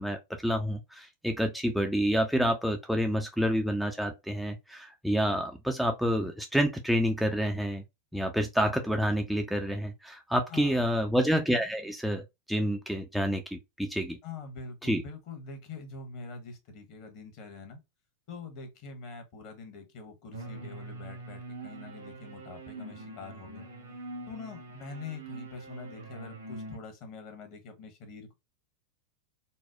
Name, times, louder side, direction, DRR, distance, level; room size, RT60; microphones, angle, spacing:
voice 1, 0.0-7.8 8.1-12.2 12.5-14.2 14.8-15.0, equal, ahead, 0.3 m, -28 dB
voice 2, 10.5-10.8 14.2-17.8 18.3-23.7 24.3-28.3, left 4 dB, 45° left, 1.0 m, -44 dB
sound 1, 20.3-26.8, right 2 dB, 70° right, 1.0 m, -44 dB
4.2 x 2.1 x 2.2 m
figure-of-eight pair, 90°, 0 cm